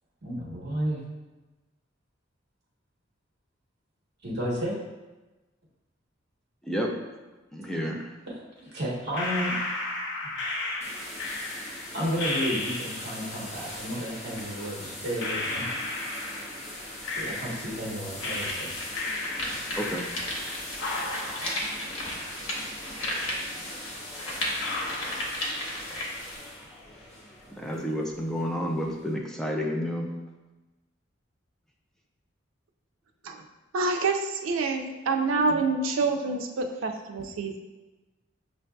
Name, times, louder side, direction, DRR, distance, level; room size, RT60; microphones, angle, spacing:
voice 1, 0.2-1.0 4.2-4.8 8.3-9.6 10.2-10.3 11.9-15.7 17.1-18.7, equal, 55° right, -4 dB, 1.1 m, -32 dB
voice 2, 6.6-6.9 7.5-8.1 19.8-20.0 27.5-30.1, equal, ahead, 0 dB, 0.4 m, -30 dB
sound 1, 9.1-13.3 14.4-14.5 15.2-17.9 18.2-20.5 20.8-22.9 23.2-23.3 23.9-24.0 24.6-25.9 26.2-26.7, left 2 dB, 65° left, 0.6 m, -34 dB
sound 2, 10.8-29.1, left 1 dB, 35° left, 0.8 m, -41 dB
sound 3, 17.9-26.4, left 1 dB, 90° left, 1.0 m, -35 dB
voice 3, 33.7-37.6, right 3 dB, 85° right, 4 dB, 0.4 m, -27 dB
6.3 x 2.6 x 2.2 m, 1.1 s
head